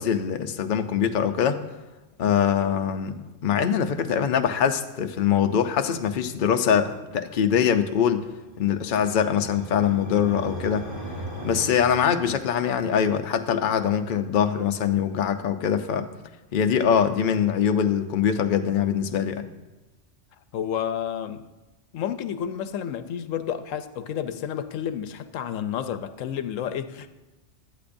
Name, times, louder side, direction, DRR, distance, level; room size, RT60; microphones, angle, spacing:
voice 1, 0.0-1.6 2.2-8.3 8.6-10.9 11.4-16.1 16.5-19.5, left 8 dB, 50° left, 6 dB, 0.7 m, -23 dB
sound 1, 8.4-12.7, right 1 dB, 45° right, 4.0 m, -38 dB
voice 2, 20.5-21.4 21.9-27.1, left 9 dB, 85° left, 11 dB, 1.0 m, -30 dB
17.0 x 12.0 x 2.6 m, 1.1 s
omnidirectional pair, 1.3 m